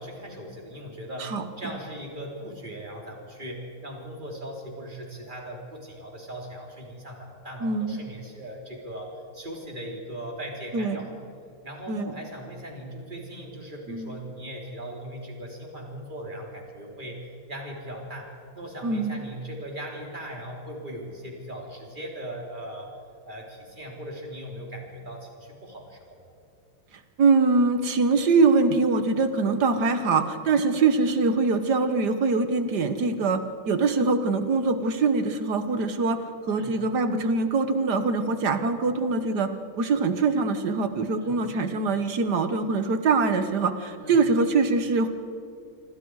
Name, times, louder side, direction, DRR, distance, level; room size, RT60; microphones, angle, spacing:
voice 1, 0.0-11.1 11.6-22.9 23.3-26.2 36.5-36.8 41.2-41.4 44.0-44.2, equal, 20° right, 0 dB, 3.9 m, -39 dB
voice 2, 7.6-8.0 10.7-11.0 11.9-12.1 13.9-14.1 18.8-19.2 27.2-36.2 36.5-39.5 39.8-45.1, right 4 dB, 55° right, 9 dB, 1.7 m, -23 dB
26.5 x 25.5 x 4.8 m, 2.5 s
omnidirectional pair, 2.3 m